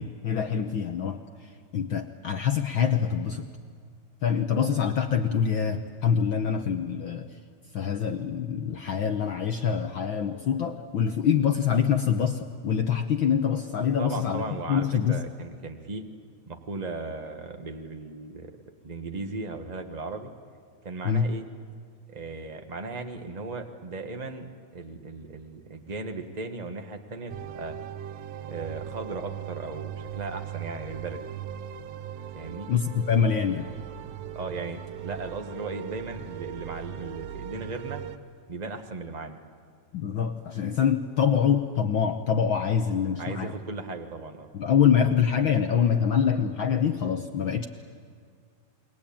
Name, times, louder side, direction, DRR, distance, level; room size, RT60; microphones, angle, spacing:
voice 1, 0.0-3.5 4.2-7.4 7.7-15.2 21.0-21.3 32.7-33.7 39.9-43.5 44.5-47.7, left 7 dB, 70° left, 6 dB, 1.2 m, -25 dB
voice 2, 14.0-16.0 16.5-18.5 18.8-20.3 20.8-21.4 22.1-27.7 28.4-31.2 32.3-32.7 34.3-38.0 38.5-39.4 43.2-44.5, right 3 dB, 55° right, 5 dB, 0.4 m, -37 dB
sound 1, 27.3-38.2, right 10 dB, 70° right, 1.8 m, -39 dB
28.5 x 22.0 x 8.7 m, 2.1 s
omnidirectional pair, 3.3 m